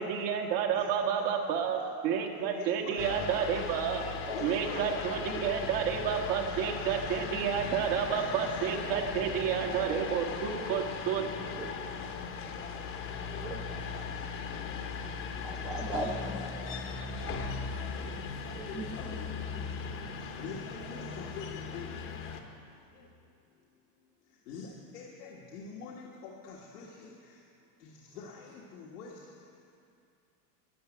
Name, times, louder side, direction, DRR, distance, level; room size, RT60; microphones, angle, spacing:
voice 1, 0.0-4.0 4.4-11.3, right 7 dB, 55° right, 3 dB, 1.7 m, -30 dB
voice 2, 0.7-1.9 2.6-3.6 4.3-5.5 6.1-7.4 7.9-9.8 10.2-10.4 10.7-11.6 13.9-14.0 15.9-16.4 17.4-19.4 20.2-21.9 24.5-27.1 27.8-27.9 28.1-29.1, left 5 dB, 90° left, -3 dB, 1.7 m, -46 dB
sound 1, 3.0-22.4, left 5 dB, 30° left, 0.9 m, -38 dB
voice 3, 4.3-4.9 8.9-9.0 9.7-9.8 11.6-11.7 13.2-14.0 15.4-17.0 18.5-18.9, right 2 dB, 10° right, -2 dB, 0.7 m, -39 dB
12.5 x 6.8 x 9.8 m, 2.5 s
supercardioid pair, 155°, 44 cm